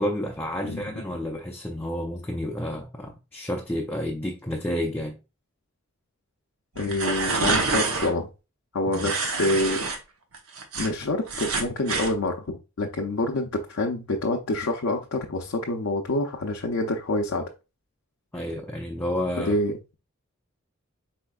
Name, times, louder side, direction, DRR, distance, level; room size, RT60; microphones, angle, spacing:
voice 1, 0.0-5.2 8.9-9.1 18.3-19.6, left 1 dB, 10° left, 0.4 m, -30 dB
voice 2, 6.8-8.3 8.7-9.8 10.7-17.5 19.4-19.7, left 2 dB, 80° left, 0.6 m, -27 dB
sound 1, 6.8-8.1 8.9-10.0 10.3-12.1, right 4 dB, 90° right, 0.9 m, -27 dB
4.4 x 4.2 x 2.3 m
head